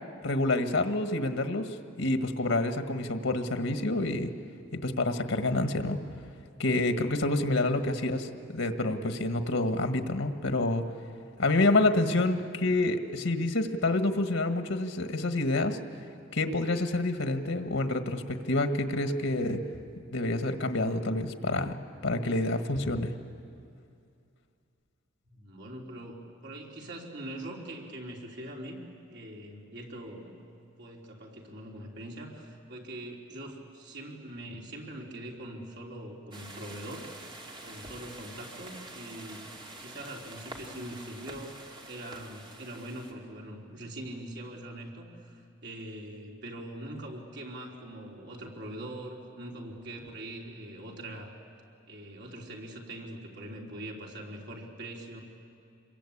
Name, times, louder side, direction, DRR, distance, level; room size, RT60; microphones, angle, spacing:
voice 1, 0.2-4.3 4.7-6.0 6.6-10.8 11.4-15.8 16.3-19.6 20.1-21.8 22.0-23.1, left 2 dB, 85° left, 7 dB, 1.5 m, -28 dB
voice 2, 25.3-28.8 29.1-30.4 30.8-37.1 37.6-51.4 51.9-55.2, right 1 dB, 60° right, -1 dB, 3.6 m, -42 dB
sound 1, 36.3-43.1, right 2 dB, 25° right, 2.6 m, -46 dB
27.0 x 22.5 x 8.6 m, 2.5 s
head